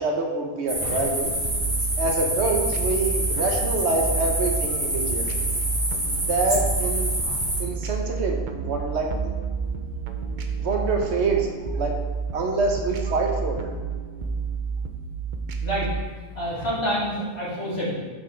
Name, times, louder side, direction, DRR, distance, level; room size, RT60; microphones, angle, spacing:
voice 1, 0.0-1.3 2.0-5.5 6.2-7.1 7.6-9.3 10.6-11.9 12.3-13.7, right 3 dB, 75° right, 1 dB, 1.3 m, -26 dB
sound 1, 0.7-7.6, right 1 dB, 30° right, 1.9 m, -27 dB
sound 2, 1.3-16.0, right 5 dB, 55° right, 0.6 m, -30 dB
voice 2, 16.3-17.9, equal, 65° left, -7 dB, 2.6 m, -28 dB
8.1 x 5.9 x 3.3 m, 1.4 s
omnidirectional pair, 1.1 m